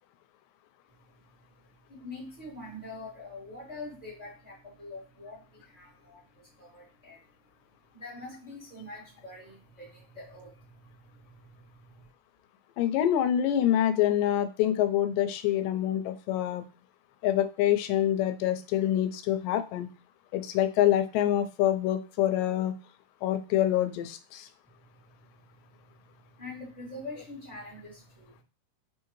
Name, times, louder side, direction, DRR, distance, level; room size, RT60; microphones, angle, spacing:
voice 1, 1.9-7.3 7.7-12.1 24.6-25.6 26.2-28.4, left 2 dB, 15° right, -5 dB, 1.5 m, -45 dB
voice 2, 12.8-16.6 17.2-19.9 20.3-22.7 23.2-24.5, left 11 dB, 90° left, 9 dB, 2.2 m, -26 dB
4.7 x 3.6 x 3.0 m, 0.33 s
omnidirectional pair, 3.8 m